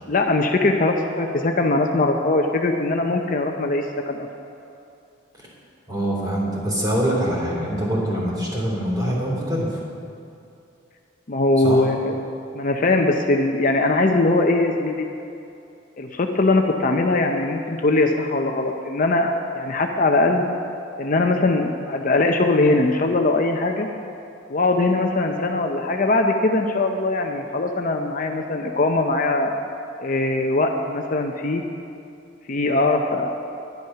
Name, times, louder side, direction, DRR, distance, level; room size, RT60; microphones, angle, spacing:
voice 1, 0.1-4.3 11.3-12.2 12.5-15.1 16.0-20.4 21.0-23.9 24.5-29.5 30.0-31.6 32.5-33.3, left 2 dB, 45° left, 3 dB, 0.6 m, -21 dB
voice 2, 5.9-9.7 11.6-11.8, equal, 20° right, -4 dB, 3.2 m, -24 dB
11.0 x 10.5 x 5.7 m, 2.6 s
head